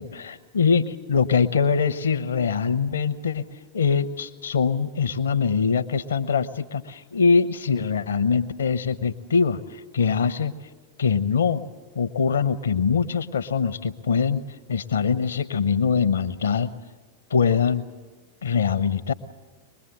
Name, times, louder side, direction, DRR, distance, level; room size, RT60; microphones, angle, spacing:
voice 1, 0.0-3.4 3.7-10.5 11.0-11.6 12.0-14.4 14.7-16.7 17.3-17.8 18.4-19.1, left 6 dB, 65° left, 13 dB, 0.9 m, -23 dB
24.0 x 21.0 x 7.5 m, 1.4 s
figure-of-eight pair, 90°, 0 cm